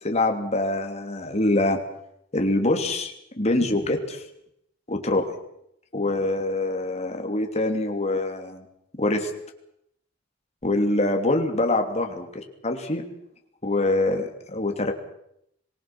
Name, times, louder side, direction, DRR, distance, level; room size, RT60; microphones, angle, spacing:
voice 1, 0.0-1.8 2.3-4.2 4.9-5.3 5.9-8.6 9.0-9.3 10.6-13.0 13.6-14.9, left 2 dB, 35° left, 4 dB, 3.0 m, -24 dB
26.0 x 20.0 x 6.1 m, 0.76 s
head